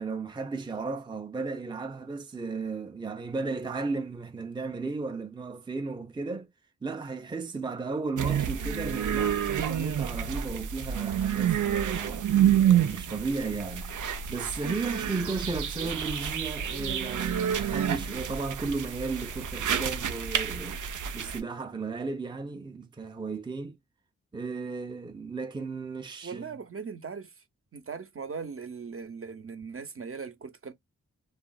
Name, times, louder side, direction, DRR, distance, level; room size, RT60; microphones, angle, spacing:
voice 1, 0.0-6.5 6.8-12.3 12.6-20.8 21.1-23.8 24.3-26.6, right 4 dB, 15° right, 0.5 m, -35 dB
sound 1, 8.2-21.4, right 9 dB, 80° right, 0.6 m, -28 dB
voice 2, 26.2-27.3 27.7-30.7, right 5 dB, 45° right, 0.8 m, -39 dB
3.1 x 2.4 x 2.3 m
cardioid pair, 45°, 30 cm